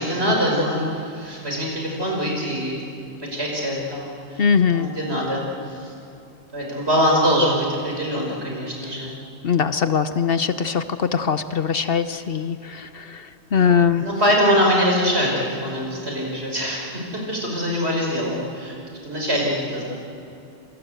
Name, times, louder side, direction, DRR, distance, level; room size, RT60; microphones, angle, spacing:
voice 1, 0.0-2.8 3.2-4.5 4.7-5.9 6.5-9.2 13.9-19.9, equal, 60° right, -1 dB, 5.7 m, -23 dB
voice 2, 4.4-4.9 9.4-14.0, left 6 dB, 55° left, 11 dB, 1.0 m, -21 dB
27.0 x 25.0 x 8.0 m, 2.6 s
omnidirectional pair, 1.2 m